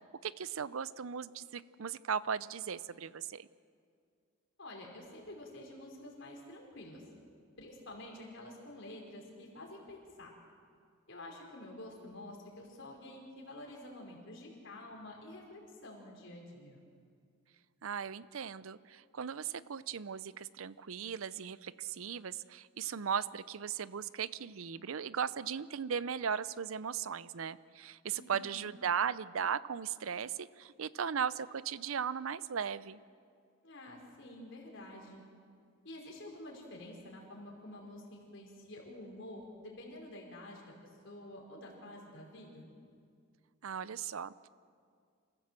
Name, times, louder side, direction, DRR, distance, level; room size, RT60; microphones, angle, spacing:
voice 1, 0.2-3.5 17.8-33.0 43.6-44.5, right 7 dB, 75° right, 17 dB, 0.6 m, -37 dB
voice 2, 4.6-7.0 7.6-10.3 11.1-16.8 28.1-28.7 33.6-35.2 35.8-40.7 41.0-42.7, left 1 dB, 60° left, -1 dB, 5.0 m, -49 dB
27.0 x 15.5 x 7.6 m, 2.2 s
head